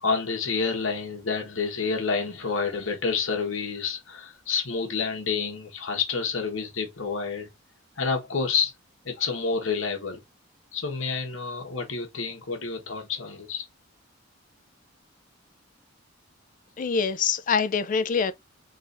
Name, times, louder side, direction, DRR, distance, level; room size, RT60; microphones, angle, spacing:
voice 1, 0.0-7.5 8.0-8.7 9.0-10.2 10.7-13.6, left 5 dB, 70° left, 1.2 m, -29 dB
voice 2, 16.8-18.3, left 6 dB, 40° left, 0.3 m, -24 dB
3.9 x 2.5 x 3.8 m
head